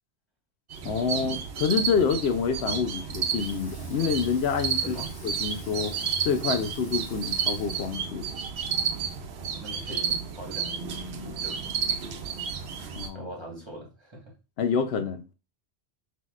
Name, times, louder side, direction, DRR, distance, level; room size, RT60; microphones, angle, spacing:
sound 1, 0.7-13.1, right 6 dB, 75° right, 0.9 m, -31 dB
voice 1, 0.8-4.9 5.2-5.9 6.2-8.3 13.0-13.3 14.6-15.3, left 6 dB, 75° left, 0.8 m, -27 dB
Water tap faucet / Sink (filling or washing), 3.2-8.4, left 1 dB, 50° left, 1.7 m, -51 dB
voice 2, 9.3-11.7 13.1-14.3, right 1 dB, 25° right, 1.3 m, -42 dB
5.9 x 2.8 x 2.4 m
omnidirectional pair, 1.1 m